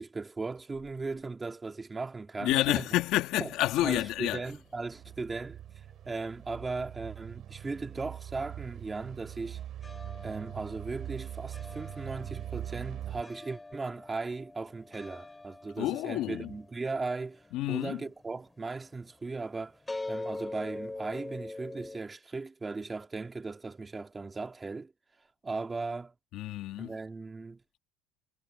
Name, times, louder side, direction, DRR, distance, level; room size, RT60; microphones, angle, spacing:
voice 1, 0.0-2.8 3.4-3.5 3.8-5.6 6.1-9.6 10.2-19.8 20.1-24.9 25.4-26.1 26.8-27.6, right 3 dB, 15° right, 2.5 m, -37 dB
voice 2, 2.4-4.5 15.8-16.6 17.5-18.0 26.3-27.0, left 15 dB, 55° left, 2.3 m, -29 dB
sound 1, 3.5-13.2, right 11 dB, 45° right, 4.5 m, -42 dB
sound 2, 4.7-7.0 7.2-22.0, left 2 dB, 10° left, 4.5 m, -45 dB
supercardioid pair, 120°, 0 cm